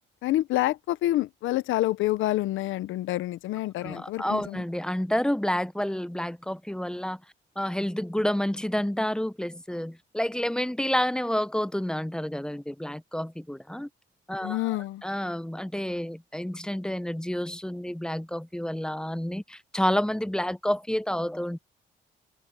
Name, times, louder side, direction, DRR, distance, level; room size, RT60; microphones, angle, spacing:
voice 1, 0.2-4.6 14.4-15.0, left 15 dB, 85° left, 0.7 m, -27 dB
voice 2, 3.8-7.2 7.6-13.9 14.3-21.6, equal, 5° left, 0.8 m, -29 dB
open air
cardioid pair, 90°, 20 cm